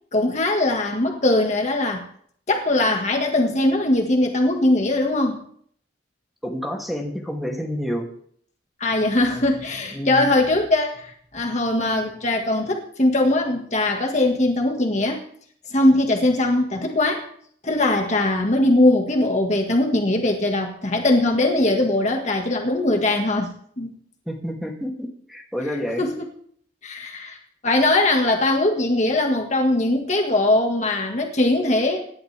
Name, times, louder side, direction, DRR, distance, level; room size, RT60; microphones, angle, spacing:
voice 1, 0.1-2.0 2.5-5.4 8.8-15.2 15.7-17.3 17.6-23.9 26.0-26.1 26.8-27.4 27.6-32.0, left 2 dB, 40° left, 2 dB, 1.7 m, -21 dB
voice 2, 6.4-8.1 9.9-10.3 24.3-26.0, equal, ahead, 0 dB, 2.6 m, -29 dB
26.0 x 11.5 x 3.4 m, 0.62 s
head